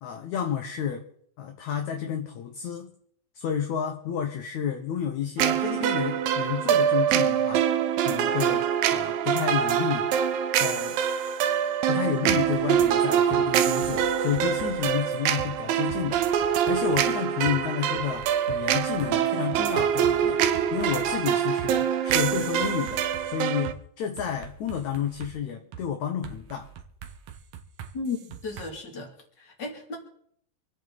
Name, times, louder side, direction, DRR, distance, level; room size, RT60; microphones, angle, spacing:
voice 1, 0.0-1.0 1.4-2.9 3.4-7.6 8.0-8.7 8.9-10.1 10.6-11.0 11.9-16.2 16.7-26.7, left 8 dB, 65° left, 5 dB, 2.2 m, -31 dB
sound 1, 5.4-23.7, right 9 dB, 85° right, 2.7 m, -25 dB
sound 2, 12.3-12.9 13.3-13.4 13.8-15.5 15.9-17.1 17.4-17.6 18.0-21.2 21.6-21.7 22.1-23.8 24.2-25.3 25.7-25.9 26.2-28.7, right 9 dB, 65° right, 2.2 m, -43 dB
voice 2, 27.9-29.1 29.4-30.0, left 4 dB, 30° left, 2 dB, 3.1 m, -34 dB
27.0 x 9.1 x 4.1 m, 0.64 s
omnidirectional pair, 4.0 m